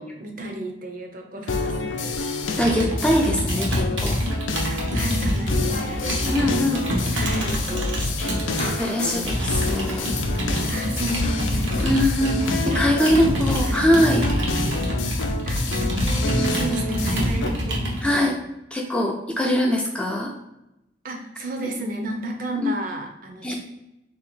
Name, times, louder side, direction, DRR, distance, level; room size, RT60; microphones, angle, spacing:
voice 1, 0.0-2.1 4.7-6.5 6.8-8.5 10.7-12.0 12.7-13.4 13.6-13.8 15.5-15.8 16.5-18.4 21.0-23.6, right 1 dB, 45° right, 2 dB, 0.7 m, -33 dB
sound 1, 1.5-17.5, left 2 dB, 90° left, 0.5 m, -28 dB
voice 2, 2.6-4.2 6.3-6.8 8.6-10.2 11.8-14.3 16.4-16.8 18.0-18.4 18.7-20.3 22.6-22.8 23.4-23.6, equal, 5° left, 0 dB, 0.4 m, -22 dB
Computer keyboard, 2.6-8.7 9.3-18.0, equal, 80° right, 1.0 m, -26 dB
sound 2, 5.6-12.1, left 2 dB, 35° left, 0.7 m, -37 dB
3.0 x 2.8 x 4.2 m, 0.90 s
head